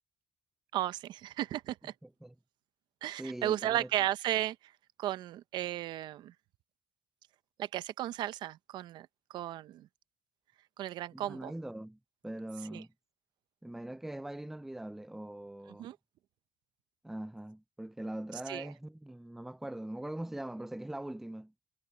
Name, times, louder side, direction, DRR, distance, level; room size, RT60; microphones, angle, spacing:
voice 1, 0.7-1.9 3.0-4.7 5.0-6.3 7.6-9.9 10.8-11.5 12.7-12.8 15.8-16.0 18.3-18.7, right 13 dB, 80° right, 0.7 m, -35 dB
voice 2, 2.0-2.3 3.2-3.9 11.1-12.9 13.6-15.9 17.0-21.5, right 1 dB, 5° right, 0.5 m, -42 dB
cardioid pair, 125°, 8 cm